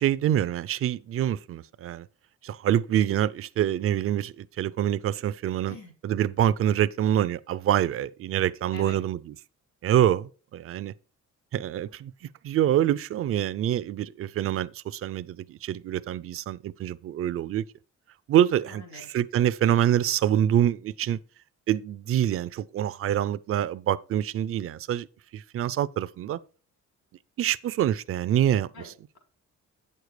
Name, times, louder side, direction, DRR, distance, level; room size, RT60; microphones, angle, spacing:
voice 1, 0.0-2.1 2.4-5.8 6.0-9.3 9.8-10.9 11.5-12.1 12.4-17.7 18.3-21.2 21.7-25.1 25.3-26.4 27.4-28.9, right 11 dB, 50° right, 0.5 m, -26 dB
voice 2, 18.7-19.1 28.7-29.2, left 3 dB, 70° left, 4.1 m, -45 dB
8.8 x 6.6 x 4.7 m
cardioid pair, 140°, 30 cm